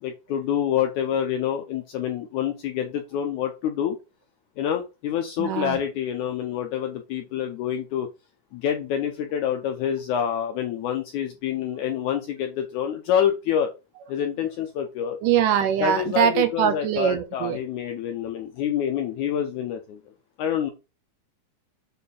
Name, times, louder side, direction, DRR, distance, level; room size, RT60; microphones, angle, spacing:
voice 1, 0.0-4.0 4.6-8.1 8.5-13.7 14.1-15.2 15.8-20.0 20.4-20.7, left 9 dB, 90° left, 1.7 m, -27 dB
voice 2, 5.4-5.8 15.2-17.6, right 9 dB, 75° right, 2.1 m, -22 dB
6.7 x 4.3 x 5.3 m
omnidirectional pair, 4.4 m